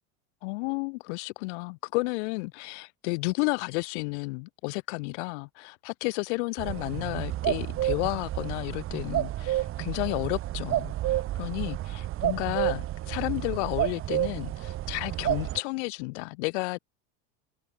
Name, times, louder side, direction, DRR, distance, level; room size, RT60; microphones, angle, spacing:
voice 1, 0.4-16.8, left 28 dB, 70° left, 1.4 m, -32 dB
sound 1, 6.6-15.6, right 14 dB, 35° right, 1.5 m, -30 dB
open air
supercardioid pair, 140°, 36 cm